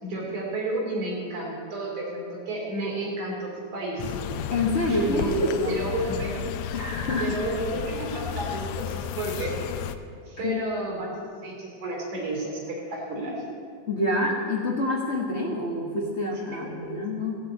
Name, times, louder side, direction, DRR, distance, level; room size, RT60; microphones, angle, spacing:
voice 1, 0.0-4.1 4.9-6.4 7.2-9.6 10.3-11.1 11.4-13.4 16.8-17.0, right 1 dB, 75° right, -2 dB, 4.8 m, -31 dB
sound 1, 4.0-10.0, left 8 dB, 80° left, 1.6 m, -33 dB
voice 2, 4.5-5.7 6.7-7.4 10.4-10.6 13.9-17.4, left 2 dB, 60° left, -3 dB, 0.6 m, -27 dB
15.0 x 7.8 x 8.6 m, 2.3 s
omnidirectional pair, 3.4 m